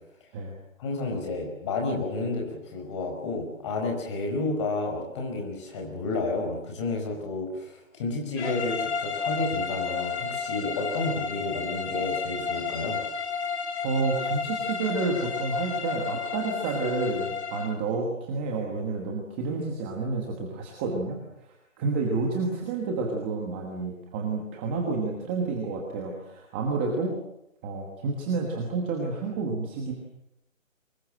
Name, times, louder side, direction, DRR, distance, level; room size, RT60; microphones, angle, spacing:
voice 1, 0.8-13.0, left 3 dB, 20° left, 2 dB, 5.0 m, -31 dB
sound 1, 8.4-17.8, left 5 dB, 55° left, 3.1 m, -32 dB
voice 2, 13.8-27.1 27.6-29.9, right 3 dB, 10° right, 1 dB, 1.2 m, -30 dB
24.5 x 21.0 x 7.7 m, 0.82 s
hypercardioid pair, 170°, 40 cm